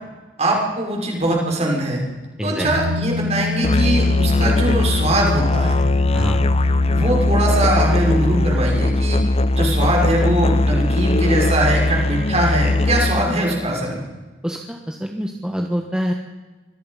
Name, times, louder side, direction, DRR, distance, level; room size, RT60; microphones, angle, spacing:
voice 1, 0.4-2.0 2.4-5.8 6.9-9.2 9.5-14.0, right 1 dB, 35° right, -1 dB, 6.1 m, -21 dB
sound 1, 2.6-11.8 12.1-12.2, left 3 dB, 80° right, 2.6 m, -30 dB
Musical instrument, 3.6-13.4, left 2 dB, 35° left, 0.8 m, -19 dB
voice 2, 14.4-16.1, equal, 5° right, 2 dB, 1.3 m, -25 dB
25.5 x 18.0 x 5.7 m, 1.2 s
head